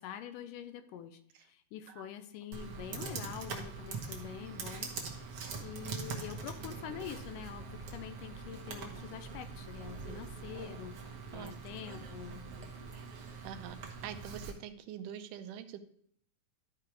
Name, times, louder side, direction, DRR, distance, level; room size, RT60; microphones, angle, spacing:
voice 1, 0.0-4.9 5.6-12.9, left 9 dB, 85° left, 9 dB, 2.3 m, -46 dB
Computer keyboard, 2.5-14.5, right 5 dB, 55° right, 1.9 m, -43 dB
voice 2, 13.4-13.8 14.0-15.8, right 9 dB, 80° right, 9 dB, 2.2 m, -44 dB
12.5 x 4.7 x 4.8 m, 0.67 s
omnidirectional pair, 3.8 m